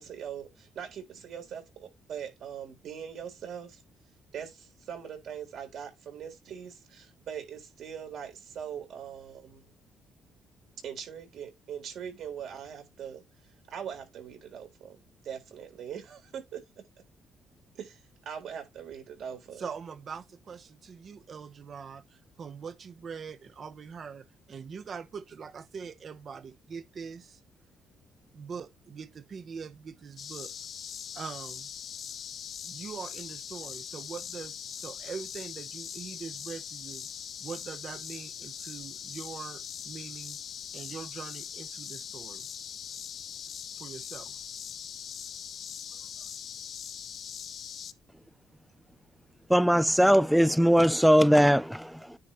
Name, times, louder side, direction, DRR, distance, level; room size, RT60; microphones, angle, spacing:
voice 1, 0.0-3.8 4.3-9.7 10.8-16.6 17.7-19.6, right 8 dB, 70° right, 3.8 m, -41 dB
voice 2, 19.6-27.4 28.3-30.5 31.1-31.7 32.6-37.1 37.4-40.4 40.7-42.5 43.8-44.4 45.9-46.3, right 6 dB, 50° right, 0.9 m, -43 dB
sound 1, 30.2-47.9, left 8 dB, 60° left, 0.7 m, -41 dB
voice 3, 49.5-52.2, equal, ahead, 0.4 m, -21 dB
9.8 x 4.2 x 3.1 m
cardioid pair, 95°, 0 cm